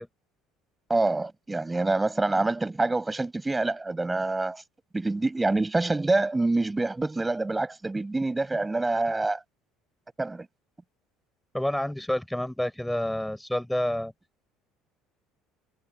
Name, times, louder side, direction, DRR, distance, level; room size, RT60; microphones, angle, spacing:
voice 1, 0.9-4.6 4.9-9.4 10.2-10.5, right 2 dB, 10° right, 6.1 m, -26 dB
voice 2, 11.5-14.1, left 1 dB, 5° left, 5.6 m, -28 dB
cardioid pair, 115°, 0 cm